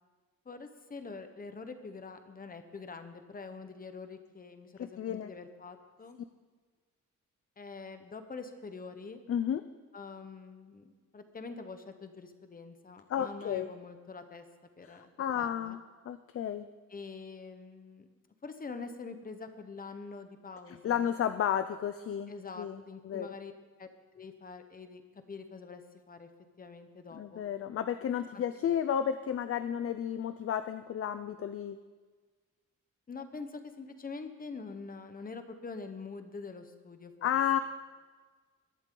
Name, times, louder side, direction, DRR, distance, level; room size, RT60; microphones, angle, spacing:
voice 1, 0.4-6.2 7.6-9.2 9.9-14.4 14.8-15.1 15.3-15.8 16.9-18.1 18.4-21.1 22.3-23.5 23.8-25.0 25.3-25.8 26.1-26.3 26.6-27.4 28.3-28.4 33.1-37.6, left 4 dB, 25° left, 8 dB, 1.0 m, -45 dB
voice 2, 4.8-5.3 9.3-9.6 13.1-13.7 14.9-15.8 16.1-16.7 20.7-22.3 22.6-22.8 23.0-23.3 27.1-31.8 37.2-37.6, left 9 dB, 45° left, 10 dB, 0.4 m, -32 dB
21.5 x 11.0 x 3.8 m, 1.4 s
wide cardioid pair, 175°, 32 cm